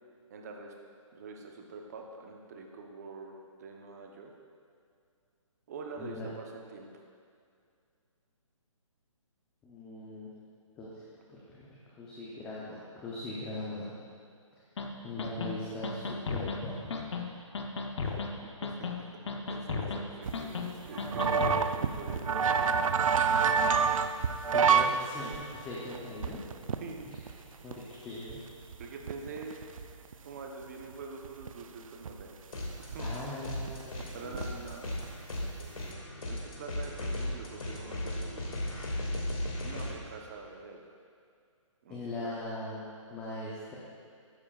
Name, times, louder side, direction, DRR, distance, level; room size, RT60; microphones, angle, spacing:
voice 1, 0.3-0.7 1.1-4.3 5.7-6.9 18.6-19.2 19.5-22.8 26.8-27.2 28.8-29.6 30.2-32.3 32.8-33.1 34.1-35.1 35.4-38.6 39.6-41.0 41.8-42.4, right 4 dB, 30° right, 2 dB, 0.9 m, -45 dB
voice 2, 6.0-6.3 9.6-10.3 10.8-11.7 12.0-13.9 15.0-16.9 24.5-26.4 27.6-28.4 33.0-34.4 41.9-42.8 43.1-43.7, left 1 dB, 10° left, -7 dB, 0.6 m, -40 dB
sound 1, 14.8-14.9 15.2-15.5 15.8-16.6 16.9-17.2 17.5-18.3 18.6-19.0 19.3-20.0 20.3-20.7 21.0-21.6, left 4 dB, 55° left, 0.9 m, -34 dB
sound 2, 20.2-24.9 25.3-25.4 25.9-27.3 27.7-27.8 28.3-28.4 28.6-30.1 30.6-30.7 30.9-31.5 32.1-32.2 32.9-33.0 33.3-34.4 34.7-35.1 35.4-35.8, right 6 dB, 80° right, 0.6 m, -27 dB
sound 3, 32.5-33.2 33.4-39.9, left 1 dB, 90° left, 2.3 m, -36 dB
12.5 x 9.8 x 2.4 m, 2.3 s
hypercardioid pair, 165°, 17 cm